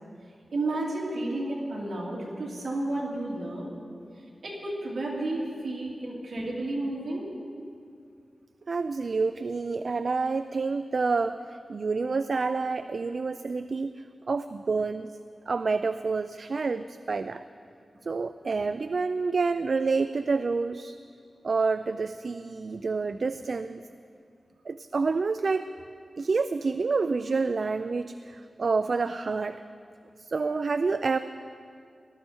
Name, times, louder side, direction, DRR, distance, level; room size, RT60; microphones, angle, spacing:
voice 1, 0.5-3.7 4.4-7.3, right 2 dB, 70° right, -4 dB, 3.1 m, -32 dB
voice 2, 8.7-13.9 14.3-15.1 15.5-17.4 18.0-21.0 21.4-23.8 24.7-25.7 26.2-29.6 30.2-31.2, right 4 dB, 55° right, 11 dB, 0.3 m, -28 dB
19.0 x 12.5 x 4.4 m, 2.3 s
wide cardioid pair, 110°, 0 cm